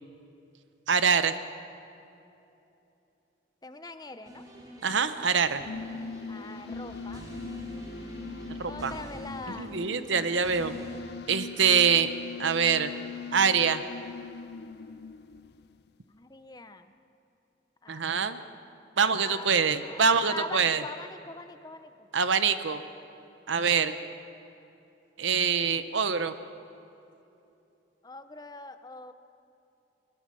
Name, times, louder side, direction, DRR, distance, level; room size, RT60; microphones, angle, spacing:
voice 1, 0.9-1.3 4.8-5.6 8.6-8.9 9.6-10.7 11.3-12.1 12.4-12.9 13.3-13.8 17.9-18.4 19.0-20.8 22.1-22.8 23.5-24.0 25.2-26.3, right 6 dB, 80° right, 11 dB, 0.9 m, -24 dB
voice 2, 3.6-4.4 5.5-5.7 6.3-7.2 8.6-9.7 16.1-16.9 17.8-18.3 19.1-19.5 19.8-22.1 28.0-29.1, left 3 dB, 20° left, 9 dB, 0.8 m, -42 dB
sound 1, 4.2-11.0, right 1 dB, 20° right, 2.8 m, -46 dB
sound 2, 5.4-15.9, left 5 dB, 55° left, 0.5 m, -41 dB
21.5 x 21.0 x 6.3 m, 2.8 s
head